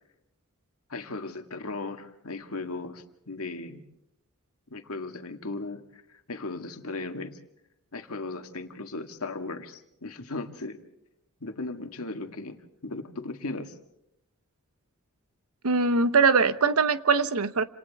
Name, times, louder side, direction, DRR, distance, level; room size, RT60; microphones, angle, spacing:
voice 1, 0.9-3.8 4.7-6.0 6.3-7.4 7.9-10.8 11.4-13.8, left 3 dB, 80° left, 6 dB, 1.9 m, -37 dB
voice 2, 15.6-17.6, right 4 dB, 80° right, 13 dB, 0.9 m, -22 dB
28.5 x 27.5 x 3.5 m, 0.81 s
head